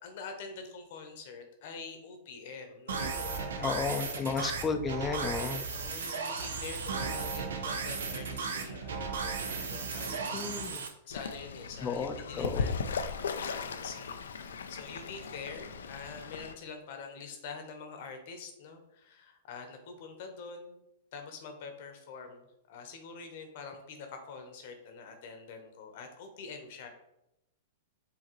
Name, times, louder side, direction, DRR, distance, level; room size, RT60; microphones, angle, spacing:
voice 1, 0.0-4.2 5.7-10.2 11.0-12.9 13.1-20.8 21.1-26.9, left 5 dB, 60° left, 5 dB, 0.9 m, -46 dB
sound 1, 2.9-10.9, right 5 dB, 80° right, 0.6 m, -35 dB
voice 2, 3.6-5.7 10.3-10.8 11.8-12.6, left 5 dB, 20° left, 7 dB, 0.5 m, -33 dB
Fowl / Bird, 11.1-16.5, left 5 dB, 80° left, 0.4 m, -37 dB
4.8 x 2.9 x 3.0 m, 0.85 s
hypercardioid pair, 115°, 0 cm